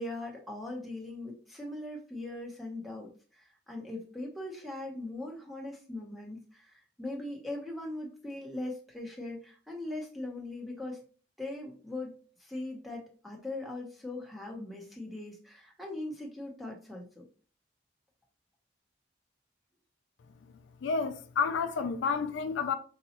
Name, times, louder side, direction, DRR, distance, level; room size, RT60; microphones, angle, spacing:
voice 1, 0.0-11.0 11.4-17.2, left 2 dB, ahead, 0.7 m, -40 dB
voice 2, 20.8-22.7, left 5 dB, 70° left, 0.3 m, -30 dB
3.9 x 2.3 x 2.8 m
head